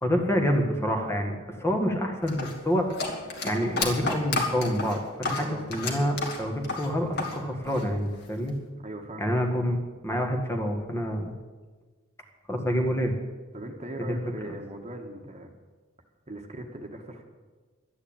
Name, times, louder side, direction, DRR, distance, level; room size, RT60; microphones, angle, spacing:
voice 1, 0.0-2.9 3.4-8.5 9.2-9.8 10.0-11.3 12.5-13.2 14.0-14.1 14.5-14.6, equal, 15° left, 3 dB, 1.7 m, -27 dB
sound 1, 2.3-7.4 7.6-8.5, left 3 dB, 60° left, 2.5 m, -31 dB
voice 2, 5.4-5.7 8.8-9.3 13.5-15.5 16.3-17.2, right 1 dB, 35° right, 4 dB, 1.5 m, -39 dB
12.5 x 9.8 x 8.8 m, 1.3 s
head